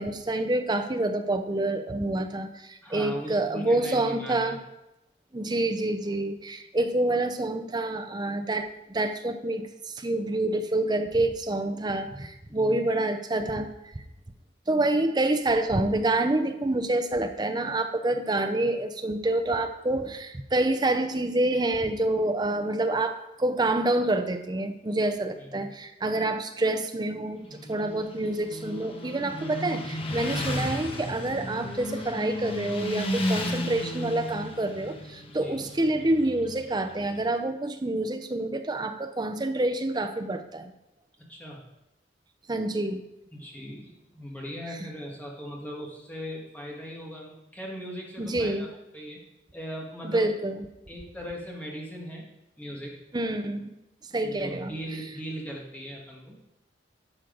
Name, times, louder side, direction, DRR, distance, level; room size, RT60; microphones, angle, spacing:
voice 1, 0.0-4.6 5.3-13.9 14.7-40.7 42.5-43.0 44.7-44.9 48.2-48.7 50.0-50.6 53.1-53.7 54.1-54.7, right 2 dB, 25° right, 8 dB, 0.6 m, -27 dB
voice 2, 2.8-4.6 12.5-12.8 25.4-25.7 35.4-35.6 41.3-41.6 43.3-48.7 48.9-49.2 49.5-50.3 50.9-53.0 54.2-56.4, equal, 10° left, -3 dB, 1.8 m, -39 dB
Motorcycle, 27.4-37.2, left 1 dB, 30° left, 1.1 m, -34 dB
11.5 x 6.4 x 3.9 m, 0.91 s
head